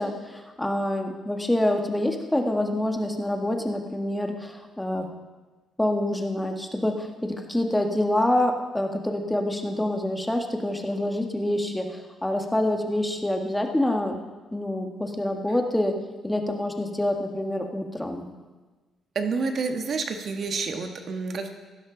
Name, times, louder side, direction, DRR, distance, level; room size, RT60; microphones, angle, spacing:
voice 1, 0.0-5.0 5.8-14.2 14.5-15.9 16.2-18.2, left 1 dB, 10° left, 3 dB, 1.6 m, -26 dB
voice 2, 19.1-21.5, right 4 dB, 55° right, 5 dB, 1.5 m, -29 dB
16.0 x 12.0 x 3.9 m, 1.3 s
cardioid pair, 90°, 0 cm